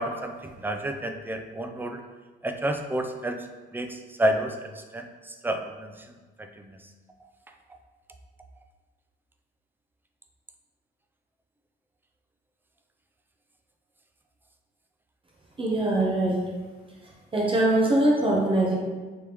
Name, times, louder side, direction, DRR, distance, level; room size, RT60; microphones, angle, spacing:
voice 1, 0.0-2.0 2.4-3.5 3.7-6.8, right 1 dB, 10° right, 5 dB, 0.3 m, -30 dB
voice 2, 15.6-16.4 17.3-18.7, right 1 dB, 25° right, -3 dB, 0.8 m, -22 dB
3.4 x 3.4 x 2.9 m, 1.3 s
cardioid pair, 90°, 20 cm